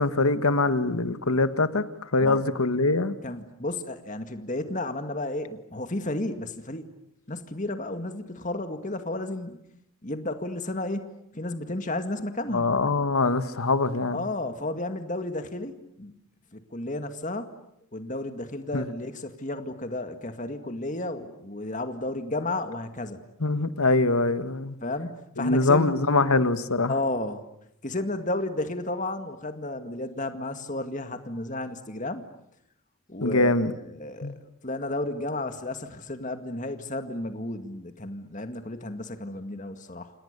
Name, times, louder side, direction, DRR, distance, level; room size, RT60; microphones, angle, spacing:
voice 1, 0.0-3.1 12.5-14.3 18.7-18.9 23.4-24.8 25.4-27.0 33.2-33.8 34.2-34.4, left 3 dB, 85° left, 11 dB, 1.5 m, -23 dB
voice 2, 3.2-6.9 7.3-9.6 10.0-11.1 11.3-12.7 14.1-15.7 16.0-16.1 16.5-17.5 17.9-23.2 24.8-26.0 26.9-27.4 27.8-32.3 33.1-33.5 33.9-34.3 34.6-40.1, left 2 dB, 35° left, 8 dB, 2.1 m, -32 dB
29.0 x 27.5 x 6.8 m, 0.77 s
head